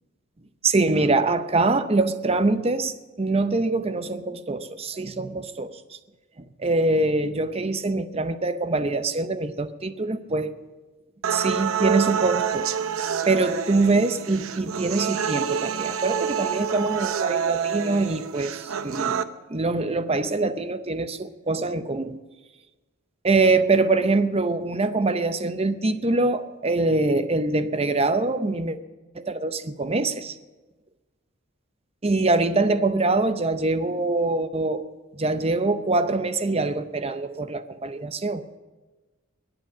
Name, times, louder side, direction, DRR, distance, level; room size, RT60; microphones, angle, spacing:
voice 1, 0.6-5.8 6.6-10.5 11.3-12.7 13.3-19.2 19.5-22.2 23.2-28.8 29.1-30.3 32.0-34.8 35.2-38.4, right 3 dB, 30° right, 11 dB, 0.7 m, -24 dB
sound 1, 11.2-19.2, right 7 dB, 75° right, 0.7 m, -27 dB
21.5 x 8.0 x 7.3 m, 1.2 s
head